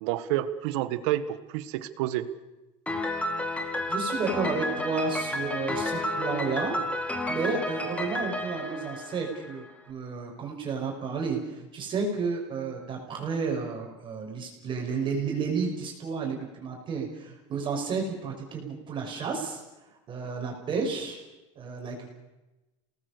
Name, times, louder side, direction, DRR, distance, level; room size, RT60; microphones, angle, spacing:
voice 1, 0.0-2.3, right 13 dB, 75° right, 13 dB, 1.7 m, -29 dB
Piano, 2.9-9.7, left 1 dB, 10° left, 2.7 m, -31 dB
voice 2, 3.9-6.8 7.3-19.6 20.1-21.2 21.6-22.1, right 5 dB, 35° right, 1 dB, 6.2 m, -31 dB
28.5 x 19.5 x 6.9 m, 1.0 s
supercardioid pair, 125°, 15 cm